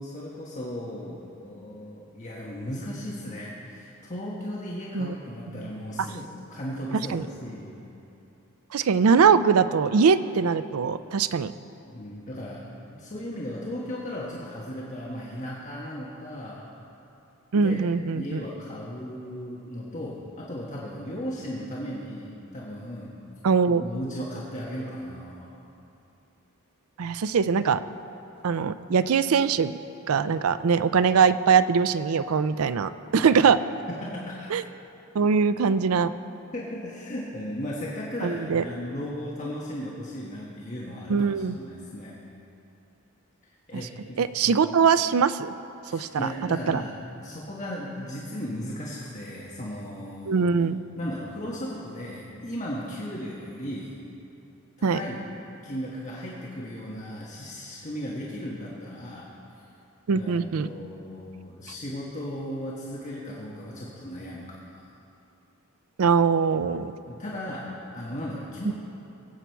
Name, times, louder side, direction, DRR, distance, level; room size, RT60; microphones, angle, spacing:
voice 1, 0.0-7.8 11.8-16.7 17.5-17.8 18.1-23.2 23.8-25.6 33.2-33.4 33.9-34.5 36.5-42.2 43.7-44.5 45.8-50.5 51.0-54.0 54.8-55.3 55.6-59.3 59.5-59.6 60.1-64.8 67.1-68.7, equal, 35° left, -5 dB, 1.3 m, -36 dB
voice 2, 8.7-11.5 17.5-18.4 23.4-23.8 27.0-27.8 28.4-29.8 30.1-33.6 34.5-34.6 35.1-36.1 38.2-38.6 41.1-41.6 44.2-45.5 45.9-46.8 50.3-50.8 54.8-55.0 60.1-60.7 66.0-66.9 68.6-68.7, right 6 dB, 85° right, 13 dB, 0.4 m, -22 dB
20.5 x 8.3 x 4.6 m, 2.9 s
head